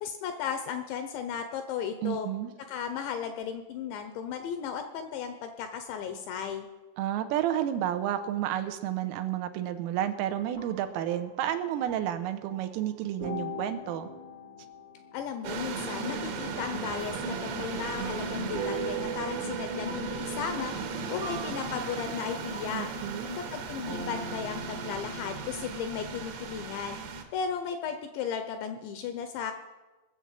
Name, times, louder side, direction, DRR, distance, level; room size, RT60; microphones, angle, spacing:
voice 1, 0.0-2.3 2.7-6.7 15.1-20.8 21.1-22.9 23.3-27.0 27.3-29.6, left 7 dB, 80° left, 7 dB, 2.7 m, -35 dB
voice 2, 2.0-2.5 7.0-14.1 22.7-23.3, right 11 dB, 85° right, 8 dB, 3.4 m, -31 dB
sound 1, 10.4-12.9 13.2-16.3 18.5-26.7, right 3 dB, 45° right, 0.9 m, -41 dB
sound 2, 15.4-27.2, right 4 dB, 65° right, 3.3 m, -36 dB
20.0 x 7.2 x 7.2 m, 1.2 s
omnidirectional pair, 5.9 m